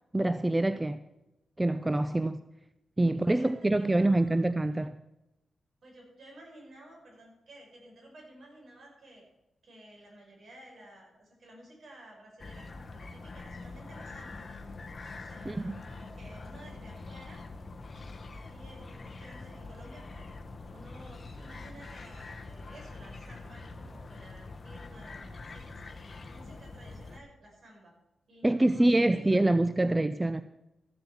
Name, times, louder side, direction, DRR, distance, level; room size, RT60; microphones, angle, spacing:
voice 1, 0.1-1.0 1.6-2.4 3.0-5.0 15.4-15.7 28.4-30.4, right 1 dB, 15° right, 12 dB, 0.5 m, -25 dB
voice 2, 3.3-4.6 5.8-9.2 9.6-14.5 15.1-17.4 17.9-20.3 20.7-25.9 26.3-27.9 28.3-29.4 29.8-29.9, right 1 dB, 60° right, -1 dB, 5.7 m, -53 dB
sound 1, 12.4-27.2, left 3 dB, 40° left, 1.3 m, -44 dB
14.5 x 7.9 x 7.0 m, 0.94 s
cardioid pair, 90°, 0 cm